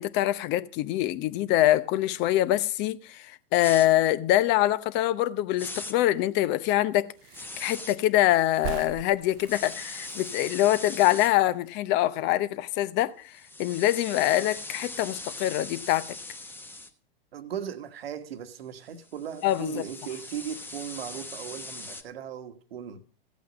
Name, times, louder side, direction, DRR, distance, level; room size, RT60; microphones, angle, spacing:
voice 1, 0.0-7.1 7.6-13.1 13.6-16.1 19.4-19.8, left 14 dB, 35° left, 0.8 m, -24 dB
sound 1, 3.6-3.9 5.6-5.9 7.3-8.0 9.5-11.3 13.3-16.9 19.0-22.0, left 2 dB, 5° left, 1.1 m, -40 dB
sound 2, 7.0-12.7 13.0-13.1 13.2-14.2 14.5-14.7, right 13 dB, 40° right, 0.7 m, -44 dB
voice 2, 17.3-23.0, right 8 dB, 75° right, 1.3 m, -37 dB
14.5 x 8.4 x 5.1 m
hypercardioid pair, 115°, 30 cm